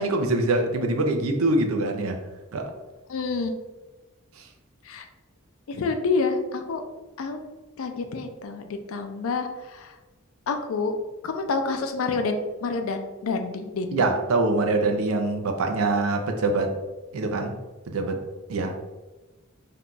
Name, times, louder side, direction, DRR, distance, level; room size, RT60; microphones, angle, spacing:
voice 1, 0.0-2.2 2.5-2.7 4.4-4.5 13.9-16.7 17.1-17.6 17.9-18.2 18.5-18.8, right 2 dB, 90° right, 4 dB, 0.5 m, -24 dB
voice 2, 3.1-3.5 4.8-5.1 5.7-6.8 7.2-7.4 7.8-9.9 10.5-11.0 11.2-14.1, left 4 dB, 80° left, 6 dB, 0.4 m, -28 dB
2.7 x 2.3 x 3.7 m, 1.2 s
head